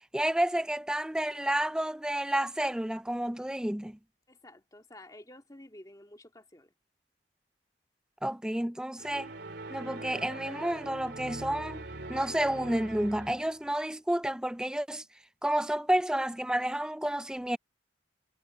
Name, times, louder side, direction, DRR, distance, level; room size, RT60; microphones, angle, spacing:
voice 1, 0.1-4.0 8.2-9.3 9.7-11.8 12.1-15.0 15.4-17.6, right 1 dB, 5° right, 0.4 m, -30 dB
voice 2, 4.3-6.7, left 1 dB, 20° left, 2.3 m, -51 dB
sound 1, 9.0-13.6, right 2 dB, 70° right, 3.2 m, -42 dB
head